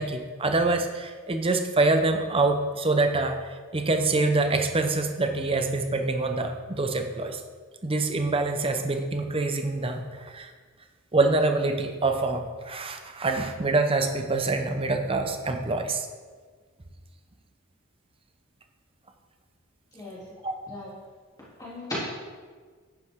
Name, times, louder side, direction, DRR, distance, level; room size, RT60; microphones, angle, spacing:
voice 1, 0.0-3.4 3.7-7.4 7.8-10.5 11.1-16.1 20.4-20.5, right 3 dB, 25° right, 6 dB, 0.8 m, -25 dB
voice 2, 19.9-20.3 20.7-20.9 21.6-22.1, left 1 dB, 15° left, -9 dB, 3.0 m, -35 dB
11.0 x 9.6 x 3.7 m, 1.6 s
head